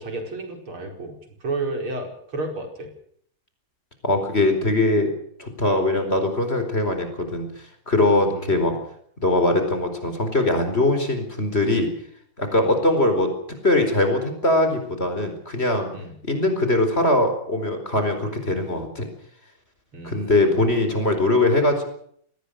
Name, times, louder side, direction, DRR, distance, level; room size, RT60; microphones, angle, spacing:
voice 1, 0.0-2.9 8.3-8.6 12.6-12.7 15.9-16.1 19.9-20.6, right 2 dB, 75° right, 3 dB, 5.7 m, -32 dB
voice 2, 4.0-5.1 5.4-7.5 7.9-8.8 9.2-11.9 12.4-13.3 13.6-15.9 16.2-19.1 20.0-21.8, left 2 dB, 30° left, 7 dB, 4.7 m, -21 dB
25.0 x 19.5 x 6.6 m, 0.64 s
omnidirectional pair, 2.3 m